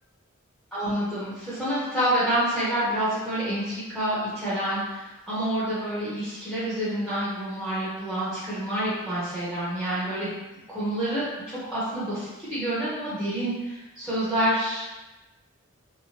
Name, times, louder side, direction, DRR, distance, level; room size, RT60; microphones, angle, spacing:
voice 1, 0.7-10.3 10.7-14.9, right 1 dB, ahead, -13 dB, 0.7 m, -28 dB
2.9 x 2.1 x 2.8 m, 1.0 s
head